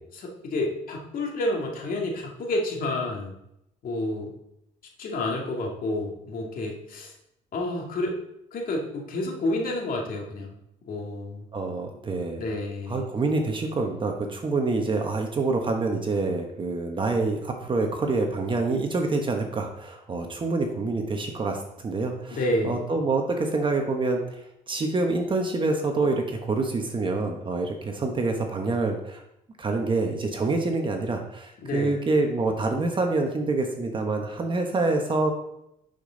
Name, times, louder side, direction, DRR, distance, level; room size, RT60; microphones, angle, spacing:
voice 1, 0.1-3.3 3.8-4.3 5.0-7.1 7.5-8.2 8.5-10.5 10.8-11.5 12.4-13.1 22.3-22.8 31.6-32.0, left 2 dB, 55° left, 0 dB, 2.1 m, -29 dB
voice 2, 11.5-12.4 12.9-24.4 24.7-29.2 29.6-35.3, right 3 dB, 30° right, 3 dB, 1.1 m, -26 dB
10.5 x 5.2 x 3.9 m, 0.81 s
cardioid pair, 110°, 17 cm